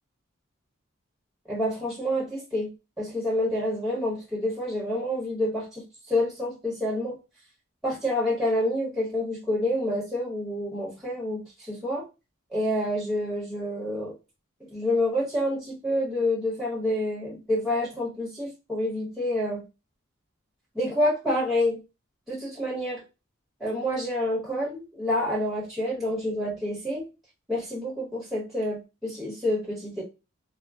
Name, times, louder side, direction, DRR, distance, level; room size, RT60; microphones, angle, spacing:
voice 1, 1.5-2.7 3.0-7.2 7.8-12.0 12.5-14.1 14.7-19.6 20.7-21.8 22.3-23.0 23.6-27.0 27.5-30.0, left 1 dB, ahead, -6 dB, 1.2 m, -28 dB
3.7 x 2.1 x 2.4 m, 0.28 s
head